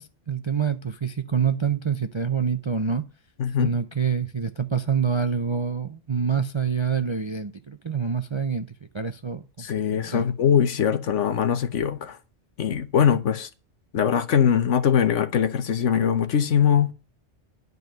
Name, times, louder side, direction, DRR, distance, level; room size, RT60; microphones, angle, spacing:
voice 1, 0.0-3.0 3.6-10.2, right 6 dB, 40° right, 0.4 m, -26 dB
voice 2, 3.4-3.7 9.6-12.2 12.6-13.5 13.9-16.9, left 8 dB, 70° left, 1.3 m, -22 dB
11.0 x 5.3 x 7.8 m
omnidirectional pair, 1.3 m